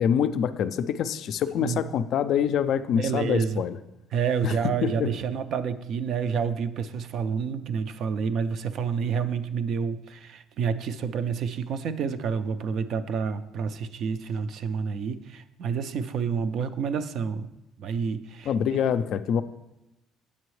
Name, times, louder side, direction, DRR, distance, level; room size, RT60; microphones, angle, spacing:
voice 1, 0.0-3.8 4.4-4.5 4.8-5.1 18.5-19.4, left 8 dB, 60° left, 11 dB, 0.3 m, -25 dB
voice 2, 2.9-3.6 4.1-17.5 17.8-18.5, right 6 dB, 55° right, 12 dB, 0.4 m, -29 dB
8.4 x 6.9 x 3.2 m, 0.96 s
cardioid pair, 125°, 0 cm